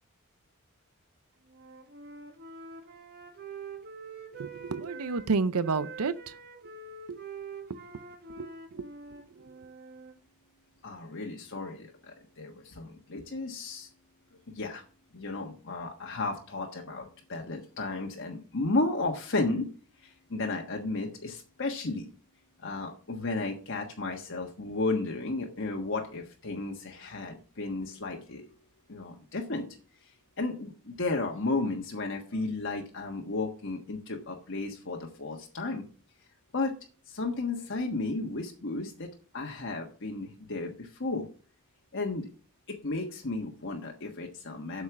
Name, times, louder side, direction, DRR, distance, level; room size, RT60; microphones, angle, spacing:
Wind instrument woodwind instrument, 1.5-5.3 5.6-10.1, right 4 dB, 45° right, 1.7 m, -45 dB
voice 1, 4.4-6.3 7.1-7.2 8.4-8.8 9.3-9.5, right 4 dB, 85° right, 0.7 m, -31 dB
voice 2, 10.8-13.9 14.5-14.8 15.1-19.7 20.0-22.1 22.6-28.4 28.9-29.7 30.4-35.8 36.5-36.7 37.1-39.1 39.3-41.3 41.9-42.3 42.7-44.8, left 3 dB, 55° left, 1.4 m, -33 dB
8.2 x 7.5 x 6.0 m
head